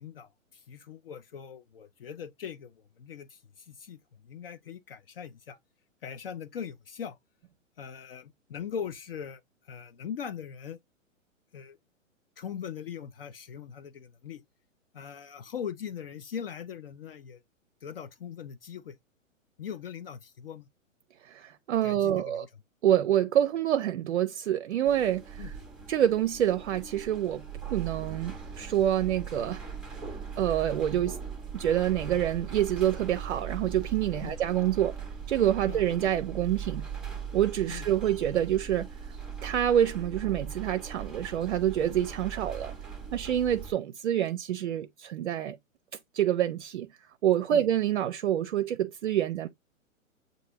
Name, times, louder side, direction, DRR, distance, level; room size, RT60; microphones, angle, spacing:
voice 1, 0.0-5.6 6.0-7.2 7.8-9.4 9.7-10.8 11.5-11.8 12.4-14.4 14.9-17.4 17.8-18.9 19.6-20.7 21.8-22.5 25.4-25.5 34.2-34.4 35.7-35.8 37.7-37.9 47.5-47.6, left 8 dB, 45° left, 0.5 m, -40 dB
voice 2, 21.2-22.5 22.8-25.5 25.9-27.4 27.7-29.6 30.4-31.2 31.5-35.0 35.3-36.9 37.3-38.9 39.4-42.8 43.1-45.6 46.1-46.9 47.2-49.5, right 11 dB, 60° right, 0.5 m, -27 dB
sound 1, 24.8-43.7, right 6 dB, ahead, 0.6 m, -40 dB
7.5 x 2.6 x 2.6 m
figure-of-eight pair, 115°, 40 cm